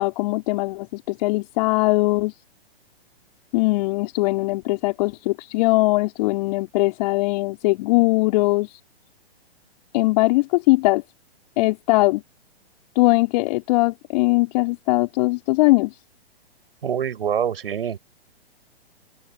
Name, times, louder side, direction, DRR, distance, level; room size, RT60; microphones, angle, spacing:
voice 1, 0.0-2.3 3.5-8.8 9.9-11.0 11.6-12.2 13.0-15.9, left 22 dB, 40° left, 5.6 m, -20 dB
voice 2, 16.8-18.0, right 8 dB, 65° right, 7.5 m, -25 dB
open air
figure-of-eight pair, 120°, 31 cm